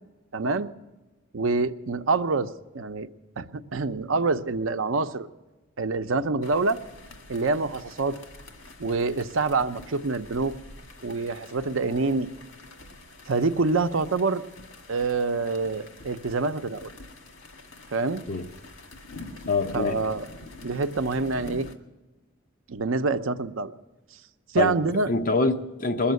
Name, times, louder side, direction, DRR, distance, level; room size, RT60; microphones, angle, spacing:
voice 1, 0.3-0.7 1.3-2.5 2.7-3.1 3.4-5.3 5.8-6.8 7.3-8.2 8.8-10.5 11.0-12.3 13.3-14.4 14.9-16.9 17.9-18.2 19.7-20.3 20.6-21.7 22.7-23.7 24.5-25.1, right 3 dB, 80° right, 0.7 m, -26 dB
sound 1, 6.4-21.8, left 2 dB, 70° left, 1.7 m, -46 dB
voice 2, 19.5-20.0 24.6-24.7 25.1-26.1, left 3 dB, 40° left, 0.9 m, -24 dB
21.5 x 7.2 x 9.4 m
head